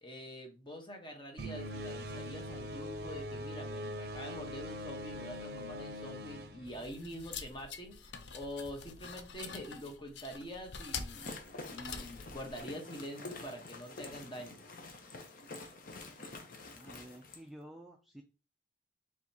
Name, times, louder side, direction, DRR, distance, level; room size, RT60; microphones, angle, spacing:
voice 1, 0.0-11.3 11.7-14.6, equal, 25° left, 3 dB, 1.0 m, -45 dB
sound 1, 1.4-7.4, equal, 60° right, 0.6 m, -42 dB
sound 2, 6.7-12.6, left 6 dB, 80° left, 0.6 m, -46 dB
sound 3, 11.0-17.4, left 3 dB, 50° left, 0.8 m, -48 dB
voice 2, 16.7-18.2, equal, ahead, 1 dB, 0.4 m, -51 dB
4.9 x 3.5 x 2.8 m, 0.31 s
head